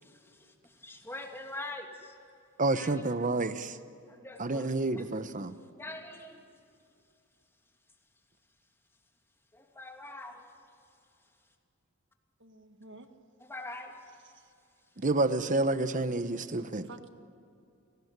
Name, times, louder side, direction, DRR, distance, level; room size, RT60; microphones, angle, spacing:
voice 1, 0.0-2.2 2.7-3.1 4.1-5.1 5.5-6.4 9.5-10.5 13.4-14.1, left 2 dB, 10° left, 2 dB, 2.7 m, -44 dB
voice 2, 2.6-3.8 4.4-5.5 15.0-16.9, right 2 dB, 40° right, 11 dB, 1.0 m, -29 dB
voice 3, 12.4-13.1 14.3-14.5 16.8-17.1, right 3 dB, 60° right, 7 dB, 1.8 m, -50 dB
30.0 x 19.5 x 9.6 m, 2.5 s
head